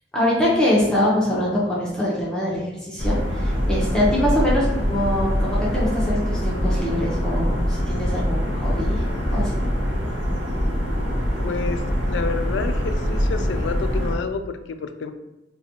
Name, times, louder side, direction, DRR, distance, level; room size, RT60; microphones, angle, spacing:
voice 1, 0.1-9.0 9.3-9.6, left 1 dB, 5° left, -7 dB, 0.7 m, -23 dB
sound 1, 3.0-14.2, equal, 80° right, 0.7 m, -23 dB
voice 2, 11.4-11.8 12.1-15.1, left 5 dB, 80° left, 8 dB, 0.3 m, -29 dB
4.0 x 2.2 x 2.8 m, 1.0 s
head